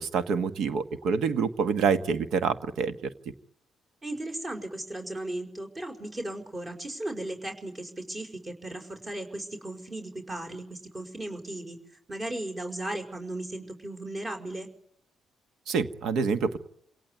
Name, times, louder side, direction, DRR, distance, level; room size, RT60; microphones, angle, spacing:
voice 1, 0.0-3.1 15.7-16.6, right 5 dB, 75° right, 11 dB, 1.5 m, -27 dB
voice 2, 4.0-11.8 12.1-14.7, right 1 dB, 30° right, 3 dB, 5.3 m, -36 dB
28.0 x 18.0 x 9.5 m, 0.69 s
supercardioid pair, 60°, 0 cm